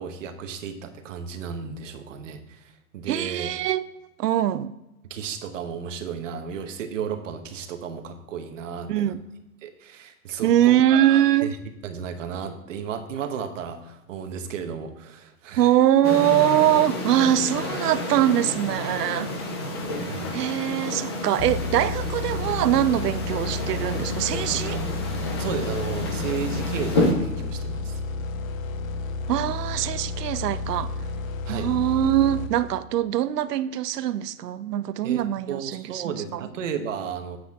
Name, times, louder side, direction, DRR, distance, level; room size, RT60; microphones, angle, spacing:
voice 1, 0.0-3.5 5.1-9.2 9.6-11.6 11.8-15.7 20.0-20.3 24.5-25.0 25.4-28.0 31.5-31.7 35.0-37.4, right 7 dB, 50° right, 1.1 m, -34 dB
voice 2, 3.1-3.8 4.2-4.7 8.9-9.2 10.4-11.6 15.6-19.3 20.3-24.8 29.3-30.9 31.5-36.5, right 12 dB, 80° right, 0.7 m, -22 dB
sound 1, 16.0-27.1, left 2 dB, 20° left, 0.5 m, -30 dB
sound 2, 21.4-33.0, left 3 dB, 60° left, 0.8 m, -31 dB
9.7 x 7.8 x 3.6 m
hypercardioid pair, 170°, 47 cm